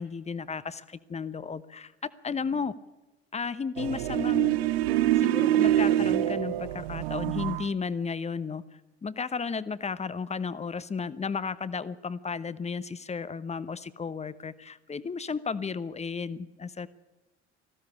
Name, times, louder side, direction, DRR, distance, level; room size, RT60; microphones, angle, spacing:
voice 1, 0.0-2.7 3.3-4.6 5.1-8.6 9.0-16.9, left 5 dB, 20° left, 15 dB, 1.1 m, -33 dB
sound 1, 3.8-7.7, right 13 dB, 60° right, 0.8 m, -25 dB
20.0 x 15.5 x 8.5 m, 1.1 s
figure-of-eight pair, 60°, 34 cm